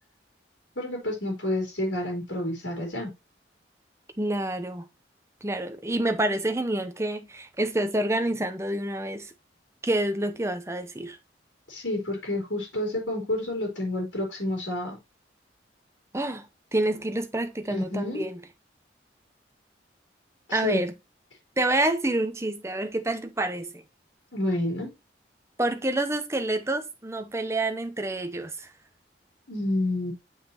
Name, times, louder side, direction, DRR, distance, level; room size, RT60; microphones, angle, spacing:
voice 1, 0.8-3.1 11.7-15.0 17.7-18.2 20.5-20.8 24.3-24.9 29.5-30.1, left 1 dB, 85° left, 3.6 m, -29 dB
voice 2, 4.2-4.9 5.4-9.3 9.8-11.2 16.1-18.4 20.5-20.9 21.6-23.8 25.6-28.7, right 1 dB, 15° right, 0.8 m, -28 dB
7.5 x 5.7 x 2.9 m
head